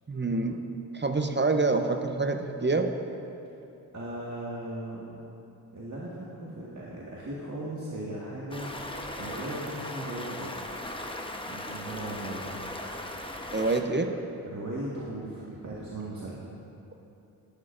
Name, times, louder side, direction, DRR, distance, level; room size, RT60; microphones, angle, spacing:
voice 1, 0.1-0.7 0.9-3.0 13.5-14.1, right 3 dB, 25° right, 6 dB, 0.7 m, -26 dB
voice 2, 3.9-5.1 5.7-10.7 11.5-12.7 14.5-16.4, right 1 dB, 45° right, -6 dB, 1.7 m, -38 dB
Stream, 8.5-13.8, left 1 dB, 10° left, 1.0 m, -38 dB
12.0 x 12.0 x 2.6 m, 2.8 s
cardioid pair, 50°, 42 cm